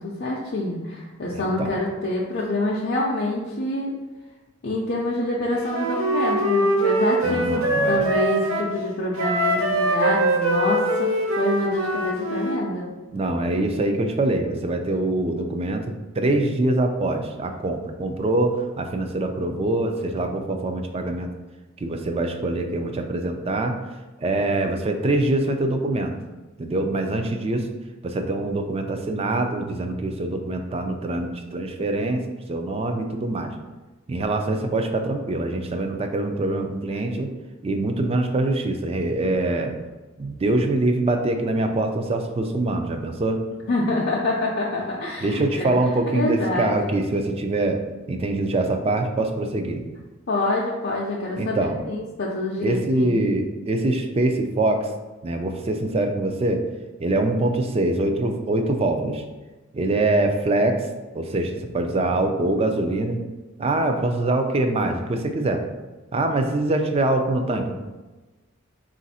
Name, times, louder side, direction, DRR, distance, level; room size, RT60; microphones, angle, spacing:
voice 1, 0.0-3.9 4.6-7.6 7.9-12.9 43.7-45.8 46.1-46.7 50.3-51.6 51.9-53.3, left 2 dB, 55° left, -5 dB, 0.5 m, -26 dB
voice 2, 1.3-1.7 7.2-8.0 13.1-21.3 21.8-23.8 24.2-26.1 26.6-27.7 28.0-32.2 32.5-33.5 34.1-37.3 37.6-39.7 40.2-43.4 45.2-47.8 48.1-49.8 51.4-51.8 52.6-54.9 55.2-56.6 57.0-59.2 59.7-60.8 61.1-63.2 63.6-65.6 66.1-67.7, right 2 dB, 30° right, 5 dB, 0.4 m, -24 dB
Wind instrument woodwind instrument, 5.7-8.7 9.2-12.6, right 1 dB, 85° right, 0.6 m, -23 dB
3.9 x 2.5 x 4.1 m, 1.2 s
head